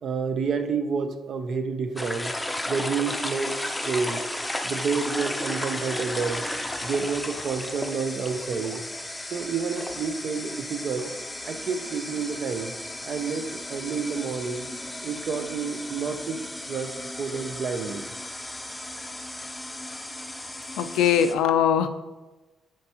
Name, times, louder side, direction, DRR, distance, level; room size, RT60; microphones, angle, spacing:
voice 1, 0.0-2.3 2.7-4.2 4.6-6.4 6.8-8.8 9.3-11.1 11.5-12.7 13.0-14.7 15.0-16.4 16.7-16.9 17.2-18.1, right 5 dB, 60° right, 7 dB, 0.6 m, -29 dB
sound 1, 2.0-21.3, left 1 dB, 10° left, 0.5 m, -34 dB
voice 2, 20.8-21.9, left 8 dB, 90° left, 10 dB, 0.4 m, -21 dB
7.4 x 4.5 x 3.0 m, 1.1 s
cardioid pair, 90°, 0 cm